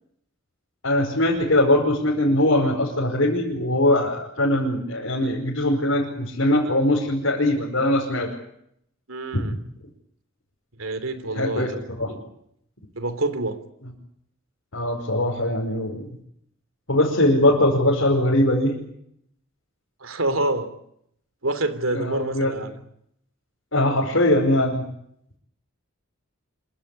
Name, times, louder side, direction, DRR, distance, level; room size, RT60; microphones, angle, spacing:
voice 1, 0.8-8.3 9.3-9.5 11.3-12.2 14.7-16.2 16.9-18.8 21.9-22.5 23.7-24.8, left 1 dB, 70° left, -3 dB, 5.3 m, -21 dB
voice 2, 9.1-9.5 10.8-11.8 12.1-12.2 13.0-13.6 20.0-20.7 21.4-22.8, right 2 dB, 75° right, 11 dB, 3.0 m, -27 dB
26.5 x 16.0 x 10.0 m, 0.73 s
head